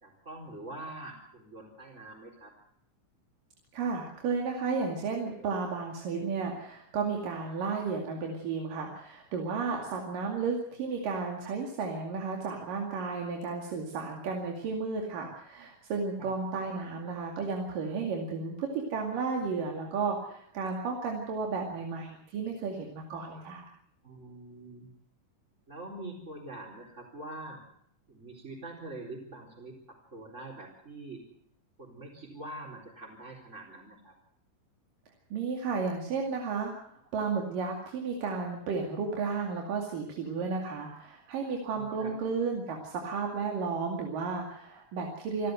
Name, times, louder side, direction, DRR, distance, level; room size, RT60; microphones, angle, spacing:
voice 1, 0.0-2.5 5.4-5.5 16.2-16.3 20.0-20.1 24.0-24.9 25.7-27.6 28.1-31.2 31.8-34.2 41.7-42.3, right 2 dB, 20° right, -3 dB, 4.3 m, -44 dB
voice 2, 3.7-23.6 35.3-45.5, right 4 dB, 85° right, 1 dB, 4.1 m, -33 dB
28.0 x 13.0 x 7.8 m, 0.70 s
omnidirectional pair, 3.8 m